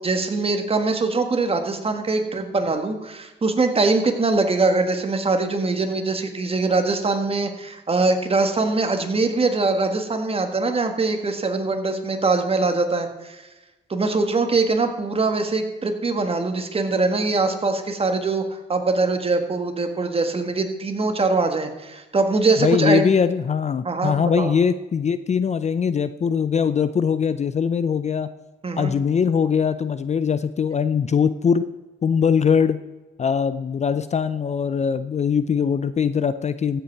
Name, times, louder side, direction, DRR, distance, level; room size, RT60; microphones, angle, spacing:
voice 1, 0.0-13.4 13.9-18.4 18.7-23.0 23.8-24.5 28.6-29.0, right 3 dB, 30° right, 6 dB, 1.7 m, -22 dB
voice 2, 22.6-28.3 28.8-31.7 32.0-32.8 33.2-36.8, left 6 dB, 35° left, 13 dB, 0.5 m, -21 dB
15.0 x 8.1 x 4.6 m, 1.1 s
cardioid pair, 90°, 20 cm